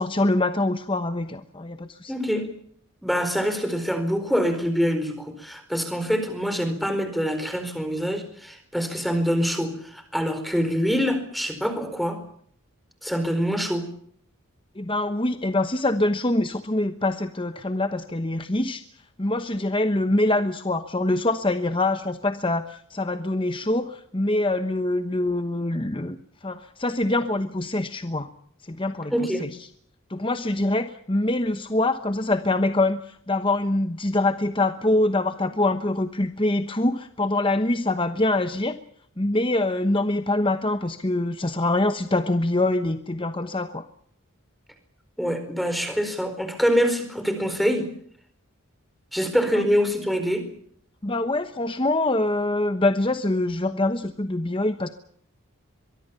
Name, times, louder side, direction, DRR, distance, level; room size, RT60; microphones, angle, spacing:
voice 1, 0.0-2.1 14.8-18.8 19.2-26.2 26.4-28.3 28.7-29.1 29.4-29.5 30.1-38.8 39.2-43.8 51.0-54.9, left 2 dB, 25° left, 9 dB, 1.1 m, -24 dB
voice 2, 2.1-2.5 3.0-12.2 13.0-13.9 29.1-29.5 45.2-47.9 49.1-50.5, equal, ahead, 9 dB, 4.4 m, -25 dB
23.5 x 22.5 x 7.1 m, 0.63 s
head